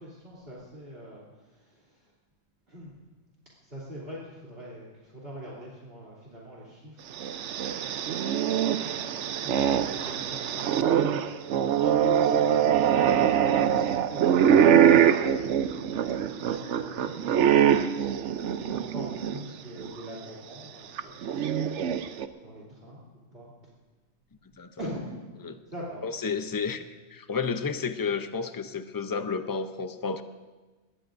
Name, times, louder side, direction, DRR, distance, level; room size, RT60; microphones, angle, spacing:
voice 1, 0.0-2.1 2.7-2.9 3.6-7.3 9.3-12.8 13.2-14.8 16.2-18.2 18.7-23.5 24.8-25.0 25.7-26.0, equal, 45° right, -6 dB, 3.2 m, -44 dB
sound 1, 7.1-19.4 19.8-19.9 21.0-22.3, right 9 dB, 70° right, 0.9 m, -23 dB
voice 2, 26.0-30.2, left 5 dB, 30° left, 9 dB, 0.4 m, -31 dB
21.5 x 18.0 x 2.6 m, 1.3 s
omnidirectional pair, 1.3 m